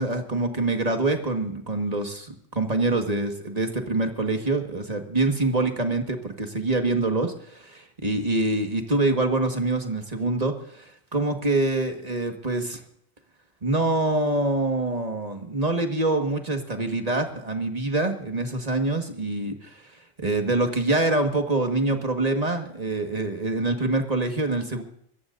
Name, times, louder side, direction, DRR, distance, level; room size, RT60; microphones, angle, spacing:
voice 1, 0.0-12.8 13.6-19.8 20.2-24.8, right 2 dB, 30° right, 4 dB, 1.8 m, -25 dB
25.0 x 14.5 x 2.6 m, 0.68 s
omnidirectional pair, 1.4 m